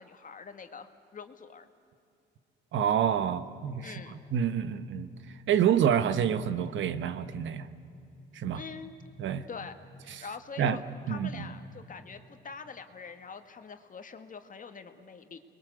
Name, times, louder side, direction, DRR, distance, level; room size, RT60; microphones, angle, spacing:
voice 1, 0.0-1.7 3.8-4.2 8.5-8.9 9.5-9.8 10.2-15.4, left 5 dB, 40° left, 7 dB, 1.9 m, -44 dB
voice 2, 2.7-5.1 5.5-7.7 8.3-8.6 9.2-9.5 10.1-10.2 10.6-10.8 11.1-11.5, right 8 dB, 75° right, 12 dB, 1.2 m, -28 dB
29.0 x 21.5 x 8.1 m, 2.6 s
cardioid pair, 90°, 20 cm